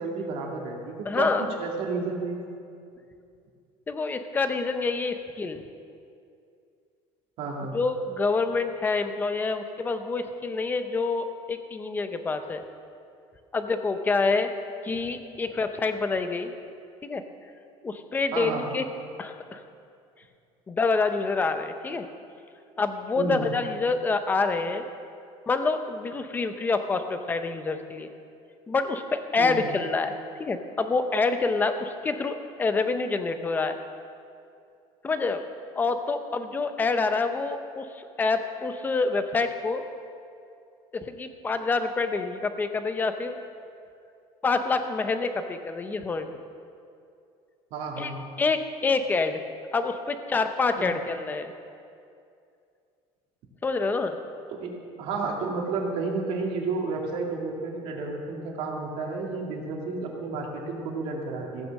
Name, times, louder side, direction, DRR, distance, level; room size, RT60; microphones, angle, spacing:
voice 1, 0.0-2.4 7.4-7.8 18.3-18.7 23.2-23.5 29.4-29.7 47.7-48.3 50.8-50.9 54.5-61.7, right 3 dB, 55° right, 0 dB, 2.3 m, -31 dB
voice 2, 1.1-1.5 3.9-5.6 7.7-12.6 13.5-14.5 14.8-16.5 17.0-17.2 17.8-18.8 19.2-19.6 20.7-22.0 22.8-24.8 25.5-28.1 28.7-30.1 30.4-33.8 35.0-35.5 35.8-39.8 41.1-43.4 44.4-46.4 48.0-48.1 48.4-49.4 49.7-51.5 53.6-54.2, left 4 dB, 15° left, 8 dB, 0.7 m, -27 dB
15.5 x 9.2 x 6.5 m, 2.5 s
cardioid pair, 170°, 12 cm